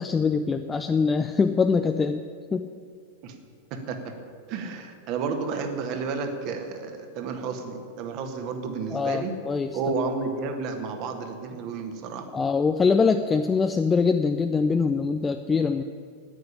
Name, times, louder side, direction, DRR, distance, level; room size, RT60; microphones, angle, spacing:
voice 1, 0.0-2.7 8.9-9.8 12.3-15.8, left 5 dB, 15° left, 7 dB, 0.5 m, -23 dB
voice 2, 3.7-4.1 4.5-9.3 9.7-12.3, right 4 dB, 40° right, 6 dB, 1.7 m, -31 dB
10.0 x 9.6 x 10.0 m, 2.2 s
figure-of-eight pair, 90°, 0 cm